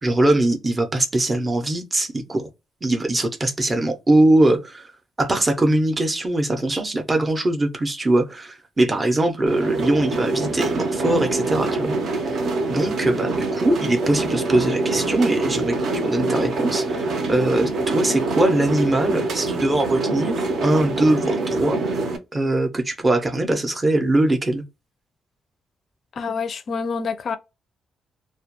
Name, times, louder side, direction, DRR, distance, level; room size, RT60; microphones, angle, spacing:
voice 1, 0.0-2.5 2.8-4.8 5.2-11.9 12.7-15.8 16.0-21.8 22.3-24.6, right 1 dB, 15° right, 0.5 m, -21 dB
sound 1, 9.5-22.2, right 3 dB, 60° right, 0.6 m, -25 dB
voice 2, 26.2-27.4, left 5 dB, 45° left, 0.4 m, -27 dB
2.2 x 2.1 x 2.9 m
cardioid pair, 155°, 0 cm